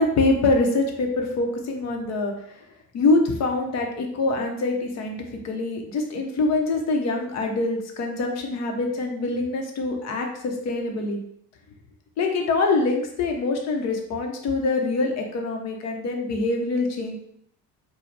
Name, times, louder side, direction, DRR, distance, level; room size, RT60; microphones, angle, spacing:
voice 1, 0.0-2.6 2.9-11.2 12.2-17.2, left 3 dB, 60° left, 3 dB, 0.9 m, -24 dB
4.9 x 2.3 x 3.3 m, 0.71 s
cardioid pair, 110°, 30 cm